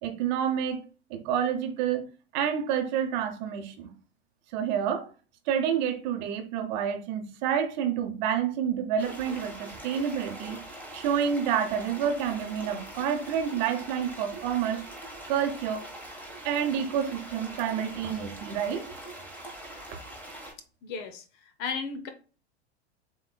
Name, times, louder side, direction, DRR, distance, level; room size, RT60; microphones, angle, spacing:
voice 1, 0.0-0.8 1.1-2.0 2.3-3.9 4.5-5.1 5.5-10.6 10.9-14.8 15.3-15.9 16.4-18.9, right 8 dB, 45° right, 0.8 m, -28 dB
sound 1, 9.0-20.5, right 1 dB, 5° left, 1.2 m, -43 dB
voice 2, 20.8-22.1, left 5 dB, 30° left, 0.6 m, -35 dB
6.9 x 3.1 x 2.3 m
figure-of-eight pair, 90°, 33 cm